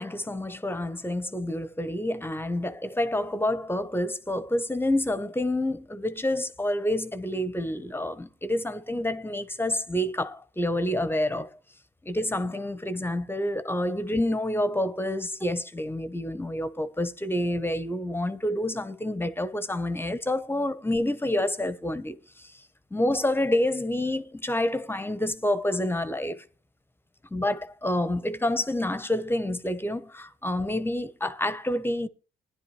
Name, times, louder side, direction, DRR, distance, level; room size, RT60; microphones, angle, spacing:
voice 1, 0.0-11.5 12.0-22.5 22.9-26.4 27.3-32.1, left 1 dB, 10° left, 1.0 m, -28 dB
16.5 x 10.5 x 3.2 m
cardioid pair, 90°, 20 cm